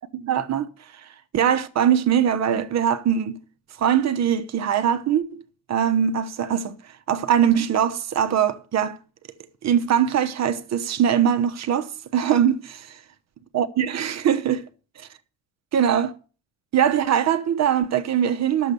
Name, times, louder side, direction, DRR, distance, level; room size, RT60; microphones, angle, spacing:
voice 1, 0.1-0.7 1.3-3.4 3.8-5.4 5.7-6.8 7.1-9.0 9.6-13.0 13.5-14.6 15.0-15.1 15.7-16.1 16.7-18.7, right 9 dB, 40° right, 1.1 m, -22 dB
11.5 x 7.4 x 6.9 m
cardioid pair, 130°, 42 cm